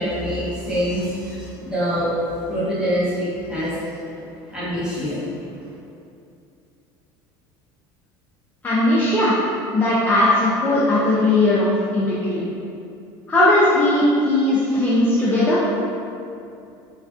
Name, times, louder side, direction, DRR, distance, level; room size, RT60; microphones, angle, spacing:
voice 1, 0.0-2.1 2.5-3.7 4.5-5.2, equal, 5° right, -11 dB, 0.8 m, -25 dB
voice 2, 8.6-9.4 9.7-12.4 13.3-15.7, left 1 dB, 15° left, -9 dB, 0.3 m, -18 dB
2.4 x 2.3 x 2.3 m, 2.6 s
cardioid pair, 135°, 11 cm